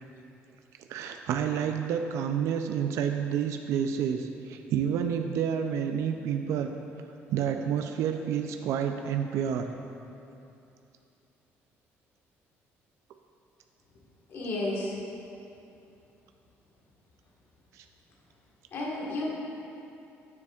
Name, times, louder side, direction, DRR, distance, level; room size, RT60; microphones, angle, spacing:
voice 1, 0.9-6.7 7.3-9.7 17.7-17.8, right 8 dB, 70° right, 5 dB, 0.3 m, -29 dB
voice 2, 14.3-14.9 18.7-19.2, left 2 dB, 50° left, -5 dB, 1.4 m, -32 dB
9.6 x 7.0 x 2.3 m, 2.8 s
cardioid pair, 140°, 5 cm